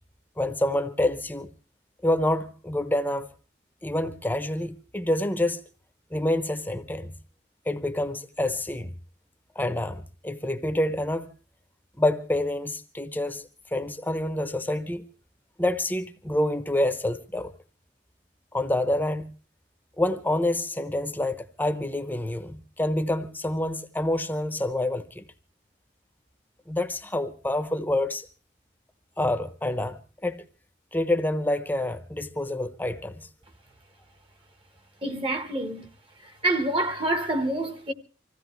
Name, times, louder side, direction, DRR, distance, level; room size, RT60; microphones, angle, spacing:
voice 1, 0.4-1.5 2.0-3.3 3.8-5.6 6.1-7.1 7.7-8.9 9.6-11.3 12.0-15.0 15.6-17.5 18.5-19.3 20.0-25.2 26.7-28.3 29.2-30.4 30.9-33.3, left 1 dB, 10° left, 0.9 m, -27 dB
voice 2, 35.0-35.9 36.4-37.9, right 2 dB, 30° right, 1.3 m, -27 dB
25.5 x 16.0 x 3.1 m
head